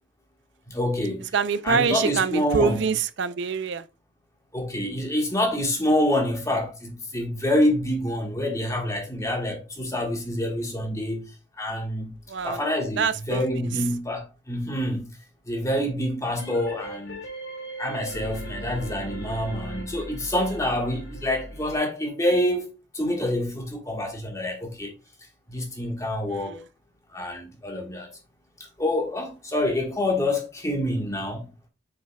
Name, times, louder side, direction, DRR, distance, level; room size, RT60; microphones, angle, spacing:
voice 1, 0.7-1.3 1.6-2.8 4.5-11.3 11.6-12.1 12.4-15.1 15.5-17.2 17.8-24.9 25.5-26.6 27.1-28.1 28.8-31.5, left 1 dB, 15° left, 1.4 m, -27 dB
voice 2, 1.3-3.8 12.3-12.6 13.0-13.7 26.3-26.6, right 5 dB, 65° right, 0.5 m, -25 dB
sound 1, 16.4-21.8, right 1 dB, 80° left, 3.6 m, -38 dB
7.3 x 5.9 x 2.3 m
head